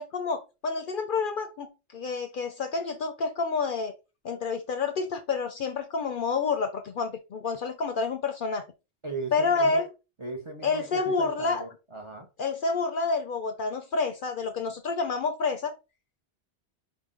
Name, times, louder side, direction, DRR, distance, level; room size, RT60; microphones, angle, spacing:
voice 1, 0.0-1.7 1.9-3.9 4.2-8.6 9.3-9.9 10.6-11.6 12.4-15.7, left 4 dB, 60° left, 0.6 m, -28 dB
voice 2, 9.0-9.8 10.2-12.3, right 3 dB, 35° right, 0.6 m, -38 dB
5.7 x 2.1 x 3.6 m
omnidirectional pair, 1.2 m